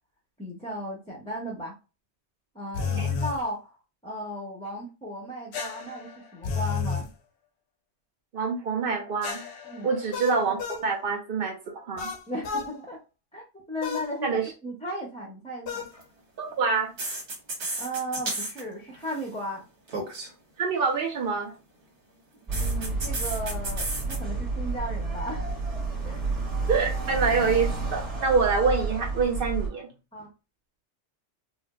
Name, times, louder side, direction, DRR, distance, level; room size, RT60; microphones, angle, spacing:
voice 1, 0.4-1.7 2.5-3.8 4.0-7.1 9.7-9.9 12.3-13.0 13.3-14.3 14.6-15.8 17.8-19.6 22.3-25.4 26.0-26.2 30.1-30.3, equal, 10° left, 0 dB, 0.5 m, -35 dB
sound 1, 2.7-3.4 5.5-7.1 9.2-10.9 12.0-12.7 13.8-14.1 15.7-15.9, left 6 dB, 75° left, 0.9 m, -31 dB
voice 2, 8.3-9.4 9.8-12.1 14.2-14.5 16.4-16.9 20.6-21.5 26.7-29.9, right 4 dB, 60° right, 3 dB, 0.7 m, -26 dB
sound 2, 15.8-16.0 17.0-18.6 18.9-19.3 19.9-20.3 22.5-24.2, right 2 dB, 90° right, 1.4 m, -33 dB
sound 3, 22.5-29.7, right 3 dB, 20° right, 1.1 m, -30 dB
4.2 x 2.1 x 2.3 m, 0.30 s
omnidirectional pair, 1.2 m